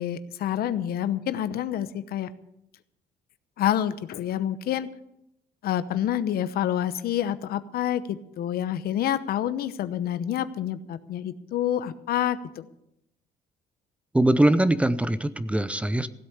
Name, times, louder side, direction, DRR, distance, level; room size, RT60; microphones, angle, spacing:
voice 1, 0.0-2.3 3.6-4.9 5.6-12.7, left 11 dB, 65° left, 13 dB, 0.9 m, -28 dB
voice 2, 14.1-16.1, right 1 dB, 5° right, 14 dB, 0.6 m, -22 dB
16.0 x 8.3 x 8.0 m, 0.80 s
cardioid pair, 110°, 17 cm